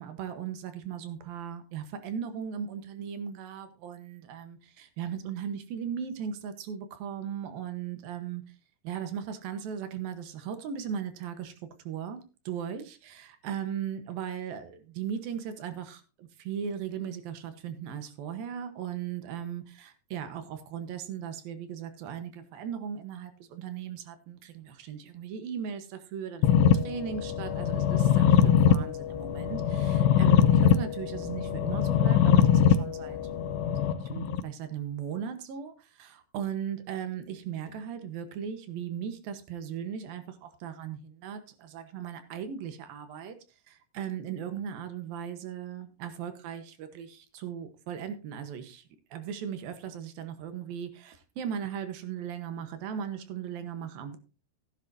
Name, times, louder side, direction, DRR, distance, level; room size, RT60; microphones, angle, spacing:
voice 1, 0.0-8.4 8.8-11.5 11.8-33.2 33.7-43.4 43.7-48.8 49.1-54.2, right 8 dB, 70° right, 9 dB, 2.8 m, -38 dB
sound 1, 26.4-34.4, left 8 dB, 85° left, 2.9 m, -23 dB
16.0 x 10.5 x 2.7 m, 0.32 s
omnidirectional pair, 4.7 m